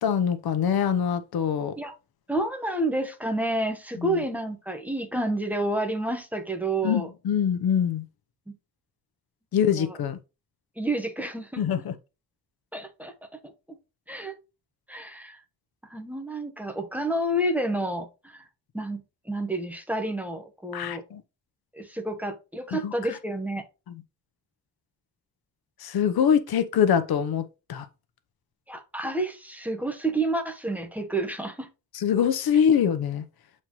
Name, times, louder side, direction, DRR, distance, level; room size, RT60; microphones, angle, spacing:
voice 1, 0.0-1.7 4.0-4.2 6.8-8.0 9.5-10.2 11.6-11.9 20.7-21.2 22.7-22.9 23.9-24.0 25.8-27.4 27.7-27.9 31.9-33.2, left 8 dB, 85° left, 0.9 m, -24 dB
voice 2, 2.3-7.1 8.5-8.6 9.8-10.0 10.8-11.6 12.7-13.8 14.1-14.3 14.9-15.4 15.9-18.5 18.7-21.0 21.7-23.6 28.7-31.7, right 1 dB, 5° right, 0.9 m, -30 dB
7.6 x 4.3 x 3.0 m
wide cardioid pair, 155°, 36 cm